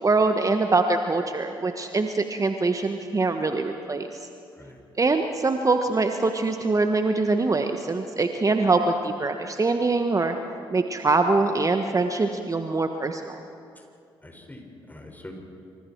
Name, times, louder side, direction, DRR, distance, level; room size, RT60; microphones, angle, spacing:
voice 1, 0.0-4.3 5.0-10.3 10.7-13.4, right 3 dB, 30° right, 6 dB, 1.4 m, -23 dB
voice 2, 14.2-15.3, left 1 dB, 15° left, 2 dB, 5.9 m, -44 dB
27.5 x 26.0 x 4.7 m, 2.5 s
hypercardioid pair, 40°, 12 cm